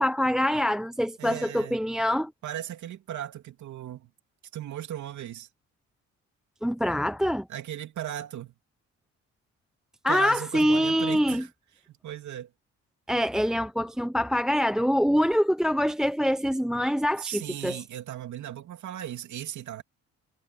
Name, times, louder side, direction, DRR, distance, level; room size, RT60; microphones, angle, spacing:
voice 1, 0.0-2.3 6.6-7.5 10.0-11.4 13.1-17.8, equal, ahead, 0.7 m, -25 dB
voice 2, 1.2-1.8 2.4-4.1 4.5-5.5 7.5-8.5 10.1-11.5 11.9-12.5 17.1-19.8, right 11 dB, 70° right, 2.9 m, -37 dB
cardioid pair, 90°, 30 cm